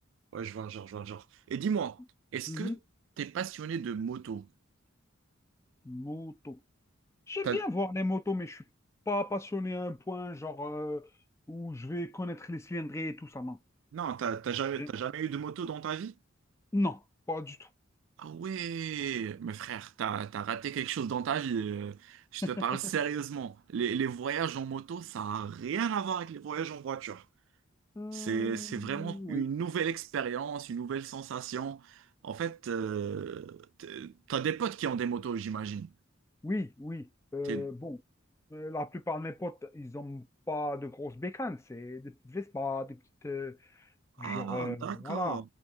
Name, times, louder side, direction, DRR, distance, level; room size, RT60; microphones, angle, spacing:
voice 1, 0.3-2.0 2.3-2.8 3.2-4.5 7.4-7.6 13.9-16.1 18.2-27.2 28.1-35.9 37.4-37.7 44.2-45.4, right 7 dB, 65° right, 0.3 m, -34 dB
voice 2, 2.5-2.8 5.8-6.6 7.3-8.6 9.1-11.1 11.5-13.6 14.8-14.9 16.7-17.0 17.3-17.7 22.4-22.5 28.0-29.5 36.4-38.0 38.5-43.9 44.2-45.4, left 2 dB, 15° left, 0.4 m, -36 dB
4.4 x 2.6 x 3.3 m
head